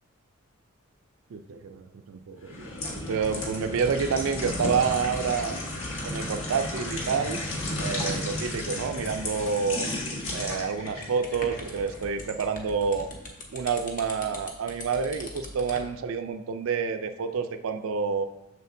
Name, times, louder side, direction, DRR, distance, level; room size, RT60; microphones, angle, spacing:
voice 1, 1.3-5.6 6.1-7.4 7.8-9.9 10.3-13.1 13.5-18.2, right 5 dB, 70° right, 8 dB, 0.4 m, -28 dB
sound 1, 2.4-12.4 12.8-13.0, left 2 dB, 70° left, 1.4 m, -33 dB
sound 2, 10.9-15.9, left 2 dB, 40° left, 0.9 m, -42 dB
6.6 x 6.5 x 2.6 m, 0.91 s
head